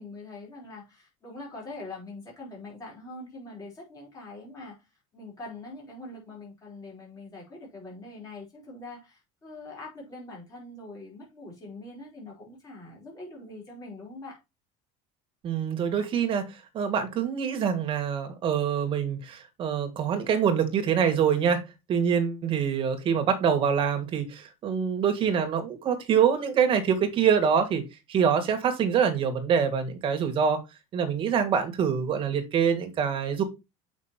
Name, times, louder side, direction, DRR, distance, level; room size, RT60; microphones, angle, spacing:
voice 1, 0.0-14.4, left 2 dB, 20° left, 5.1 m, -43 dB
voice 2, 15.4-16.5 16.7-21.6 21.9-30.6 30.9-33.4, right 7 dB, 30° right, 2.0 m, -25 dB
7.4 x 5.9 x 4.4 m
cardioid pair, 170°, 16 cm